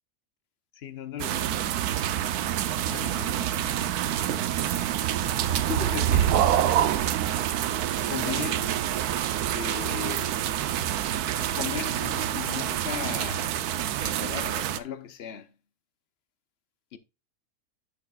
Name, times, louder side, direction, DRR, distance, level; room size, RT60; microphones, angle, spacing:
voice 1, 0.7-1.6 2.8-3.6 5.6-6.3 8.1-8.7 9.5-10.4 11.4-13.7 14.0-15.5 16.9-17.0, left 9 dB, 55° left, 0.8 m, -37 dB
sound 1, 1.2-14.8, right 11 dB, 85° right, 1.2 m, -27 dB
sound 2, 2.3-7.0, right 7 dB, 60° right, 1.2 m, -41 dB
10.5 x 6.4 x 2.3 m
omnidirectional pair, 1.6 m